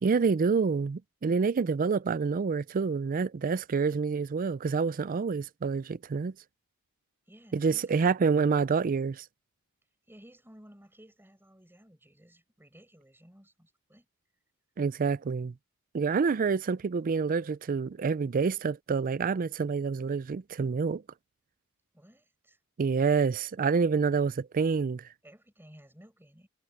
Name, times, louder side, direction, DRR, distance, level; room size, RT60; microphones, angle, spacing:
voice 1, 0.0-6.3 7.5-9.2 14.8-15.5 15.9-21.0 22.8-25.0, right 5 dB, 40° right, 0.4 m, -27 dB
voice 2, 7.3-8.4 10.1-14.1 21.9-22.6 25.2-26.5, equal, 10° right, 6.9 m, -55 dB
head